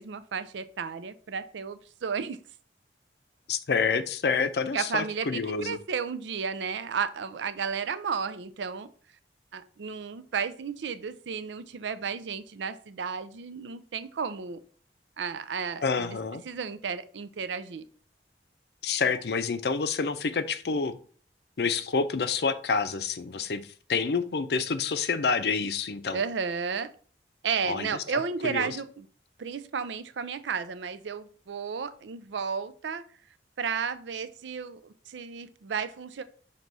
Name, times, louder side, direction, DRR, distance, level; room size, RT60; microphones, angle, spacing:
voice 1, 0.0-2.4 4.7-8.9 9.5-14.6 15.2-16.2 16.4-17.8 26.1-26.9 27.4-29.1 29.4-33.1 33.6-36.2, right 6 dB, 90° right, 0.5 m, -33 dB
voice 2, 3.5-5.8 15.8-16.4 18.8-21.0 21.6-23.6 23.9-26.2 27.6-27.9 28.4-28.8, left 5 dB, 65° left, 0.5 m, -28 dB
6.0 x 2.9 x 5.3 m
head